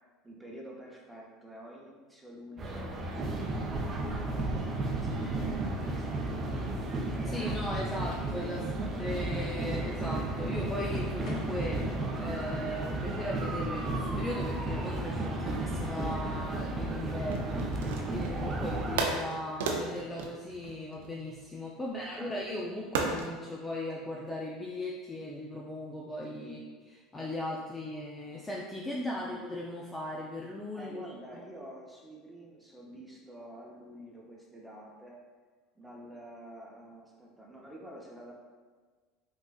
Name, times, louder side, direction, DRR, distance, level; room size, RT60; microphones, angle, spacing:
voice 1, 0.2-6.7 7.2-9.0 9.6-10.1 21.7-22.3 26.4-26.7 29.0-29.6 30.7-35.2 35.8-38.3, right 1 dB, 5° right, -3 dB, 0.8 m, -48 dB
sound 1, 2.6-19.0, right 2 dB, 35° right, 0.5 m, -33 dB
voice 2, 7.3-26.6 27.1-31.4, left 1 dB, 15° left, -3 dB, 0.4 m, -38 dB
sound 2, 8.1-8.4 11.2-11.7, left 1 dB, 50° left, 1.1 m, -52 dB
sound 3, 17.3-18.4 19.0-21.5 22.9-23.4, right 4 dB, 80° right, 0.4 m, -34 dB
3.7 x 2.5 x 2.4 m, 1.4 s
hypercardioid pair, 80°, 0 cm